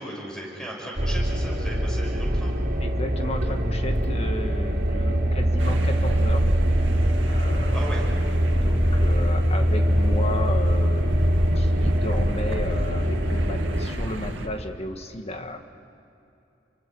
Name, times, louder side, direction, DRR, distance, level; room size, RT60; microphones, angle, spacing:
voice 1, 0.0-2.5 7.7-8.0, right 1 dB, 5° left, -2 dB, 6.5 m, -36 dB
sound 1, 1.0-13.9, equal, 55° right, 3.9 m, -23 dB
voice 2, 2.8-6.5 7.3-8.0 8.5-11.3 11.5-15.6, left 1 dB, 35° left, 6 dB, 1.8 m, -34 dB
sound 2, 5.6-14.5, equal, 85° right, 2.2 m, -31 dB
29.5 x 24.5 x 6.4 m, 2.7 s
head